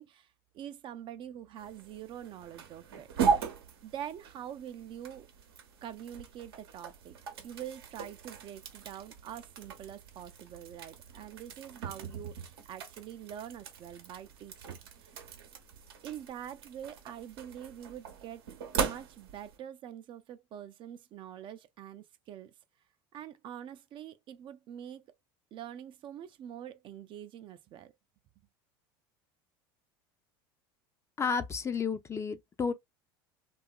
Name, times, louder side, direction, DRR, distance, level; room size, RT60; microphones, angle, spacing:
voice 1, 0.0-3.5 3.8-5.3 5.8-7.2 7.4-15.2 16.0-18.4 18.8-22.5 23.1-25.0 25.5-27.9, right 10 dB, 45° right, 0.4 m, -45 dB
sound 1, 1.6-19.6, right 6 dB, 85° right, 0.7 m, -38 dB
voice 2, 31.2-32.7, left 5 dB, 25° left, 0.4 m, -32 dB
2.7 x 2.3 x 2.3 m
hypercardioid pair, 90°, 12 cm